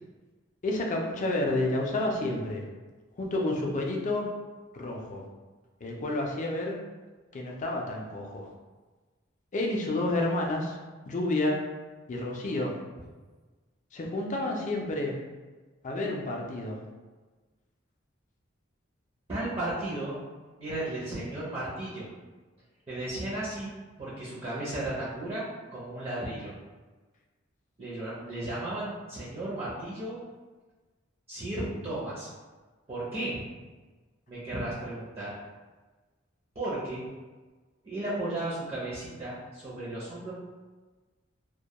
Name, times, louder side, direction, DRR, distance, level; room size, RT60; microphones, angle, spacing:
voice 1, 0.6-2.6 3.2-4.3 4.7-5.2 5.8-6.8 7.3-8.5 9.5-10.8 11.1-11.6 12.1-12.7 13.9-15.1 15.8-16.8, left 2 dB, 40° left, 0 dB, 0.4 m, -30 dB
voice 2, 19.3-20.1 20.6-22.1 22.9-23.7 24.0-25.4 25.7-26.6 27.8-30.2 31.3-32.3 32.9-33.4 34.3-35.4 36.6-37.0 37.8-40.3, right 1 dB, 30° right, -8 dB, 0.5 m, -34 dB
2.2 x 2.1 x 2.8 m, 1.3 s
head